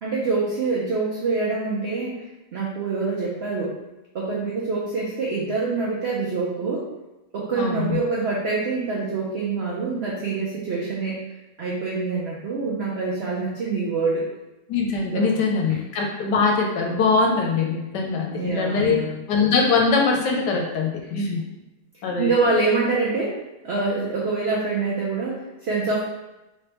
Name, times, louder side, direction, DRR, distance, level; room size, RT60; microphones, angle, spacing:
voice 1, 0.0-2.3 2.5-3.8 4.1-6.9 7.3-11.2 11.6-14.3 15.1-15.4 18.3-19.1 22.2-26.0, right 3 dB, 85° right, -4 dB, 0.5 m, -25 dB
voice 2, 7.6-8.0 14.7-19.0 19.3-21.5 22.0-22.3, left 4 dB, 80° left, 1 dB, 1.2 m, -22 dB
3.3 x 3.1 x 2.9 m, 0.99 s
omnidirectional pair, 1.8 m